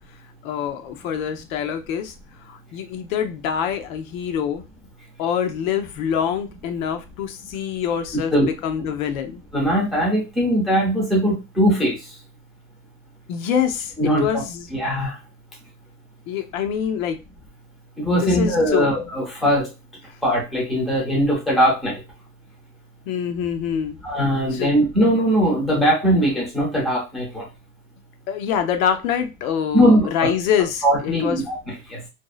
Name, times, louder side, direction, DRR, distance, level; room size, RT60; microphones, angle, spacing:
voice 1, 0.4-2.1 2.5-4.6 5.2-9.4 13.3-13.9 14.2-14.7 16.3-17.2 18.2-18.9 23.1-24.0 24.5-24.7 28.3-31.4, left 8 dB, 85° left, 6 dB, 0.7 m, -25 dB
voice 2, 9.5-12.2 14.0-14.4 14.7-15.2 18.0-19.7 20.2-22.0 24.0-27.4 29.7-30.3 30.8-32.0, equal, ahead, -5 dB, 0.5 m, -20 dB
2.6 x 2.0 x 2.3 m, 0.27 s
supercardioid pair, 170°, 40 cm